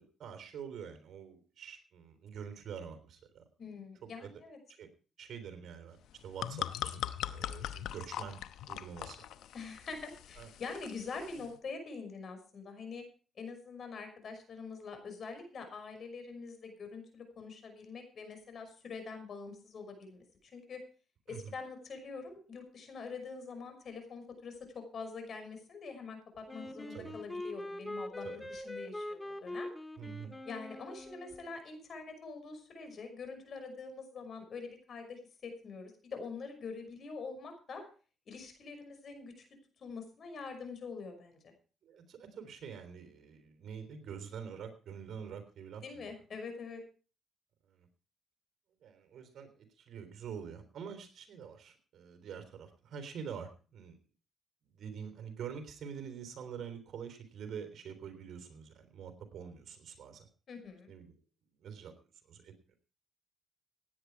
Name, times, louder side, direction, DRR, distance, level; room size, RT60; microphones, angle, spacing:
voice 1, 0.0-3.7 4.2-4.3 4.8-4.9 5.2-8.4 8.7-9.2 10.4-10.5 21.3-21.5 26.9-27.2 28.2-28.4 30.0-30.3 41.8-46.1 47.7-47.9 48.8-54.0 54.7-60.3 60.9-61.2 61.6-61.9 62.3-62.5, right 7 dB, 65° right, 8 dB, 3.7 m, -46 dB
voice 2, 3.6-4.6 9.5-13.0 13.4-20.8 21.3-29.7 30.4-37.8 38.3-39.4 39.8-41.5 45.8-46.8 60.5-60.9, left 4 dB, 55° left, 6 dB, 5.8 m, -45 dB
sound 1, 6.0-11.5, left 11 dB, 80° left, 0.9 m, -41 dB
Wind instrument woodwind instrument, 26.5-31.5, left 1 dB, 15° left, 2.1 m, -43 dB
17.0 x 10.0 x 4.7 m, 0.37 s
cardioid pair, 90°, 0 cm